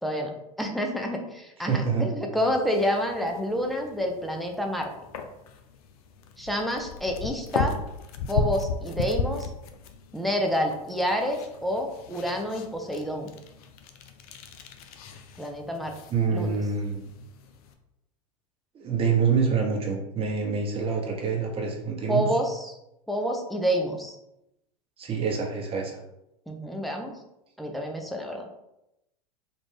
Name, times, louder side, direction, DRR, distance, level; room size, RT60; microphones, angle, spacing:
voice 1, 0.0-4.9 6.4-7.8 8.3-9.5 10.1-13.4 15.4-16.0 16.3-16.6 22.1-22.8 23.1-24.2 26.5-27.1 27.6-28.5, equal, ahead, 2 dB, 0.5 m, -28 dB
voice 2, 1.7-2.1 16.1-17.0 18.7-22.2 25.0-26.0, right 5 dB, 30° right, 0 dB, 0.9 m, -26 dB
sound 1, 2.4-17.7, left 5 dB, 65° left, 0.5 m, -36 dB
3.3 x 2.5 x 3.3 m, 0.87 s
hypercardioid pair, 95°, 20 cm